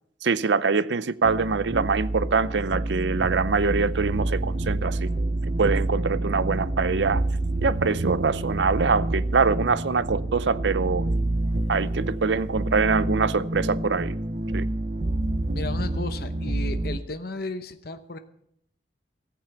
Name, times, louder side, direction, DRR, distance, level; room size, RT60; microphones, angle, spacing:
voice 1, 0.2-5.1 5.6-7.2 7.6-11.1 11.7-14.2 14.5-14.7, right 4 dB, 80° right, 0.6 m, -24 dB
sound 1, 1.2-17.0, right 2 dB, 45° right, 0.6 m, -28 dB
voice 2, 15.5-18.2, left 2 dB, 55° left, 0.8 m, -34 dB
15.0 x 8.9 x 7.1 m
head